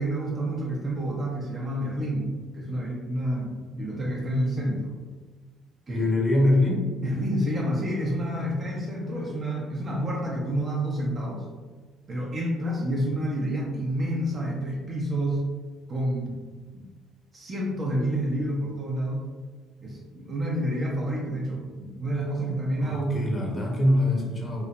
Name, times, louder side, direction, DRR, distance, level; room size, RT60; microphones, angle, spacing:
voice 1, 0.0-5.0 5.9-6.0 7.0-11.4 12.1-15.4 15.9-16.3 16.7-16.9 17.3-19.2 19.8-23.5, right 1 dB, 40° right, -3 dB, 0.5 m, -29 dB
voice 2, 5.9-6.8 22.8-24.7, left 1 dB, 30° left, -1 dB, 0.7 m, -23 dB
3.0 x 2.0 x 2.3 m, 1.4 s
supercardioid pair, 70°, 0 cm